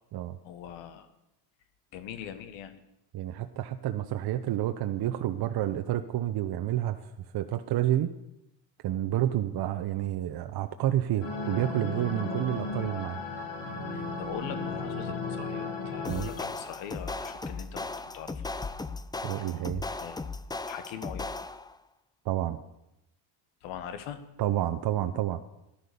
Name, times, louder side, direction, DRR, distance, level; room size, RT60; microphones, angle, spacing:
voice 1, 0.4-1.1 1.9-2.7 13.9-17.9 18.1-18.4 20.0-20.2 20.6-21.3 23.6-24.2, left 9 dB, 90° left, 11 dB, 1.5 m, -41 dB
voice 2, 3.1-8.1 8.8-13.2 16.1-16.3 19.2-19.8 22.2-22.6 24.4-25.4, right 12 dB, 55° right, 7 dB, 0.9 m, -29 dB
sound 1, 11.2-16.6, left 3 dB, 70° left, 3.7 m, -35 dB
sound 2, 16.0-21.8, left 3 dB, 10° left, 0.5 m, -37 dB
13.5 x 11.5 x 6.9 m, 0.87 s
cardioid pair, 110°, 45 cm